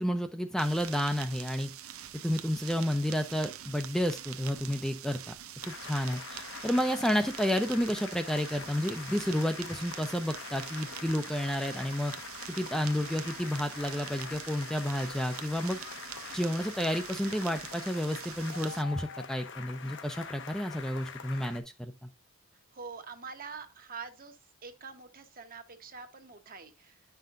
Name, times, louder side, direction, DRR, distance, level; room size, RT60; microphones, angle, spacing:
voice 1, 0.0-1.7 2.2-5.3 5.7-12.1 12.5-15.8 16.3-21.9, equal, ahead, 0.5 m, -31 dB
sound 1, 0.6-18.8, right 10 dB, 85° right, 0.7 m, -45 dB
sound 2, 5.6-21.6, left 6 dB, 60° left, 0.9 m, -44 dB
voice 2, 22.7-24.4 24.6-27.0, right 5 dB, 45° right, 1.1 m, -45 dB
10.5 x 5.7 x 2.6 m
head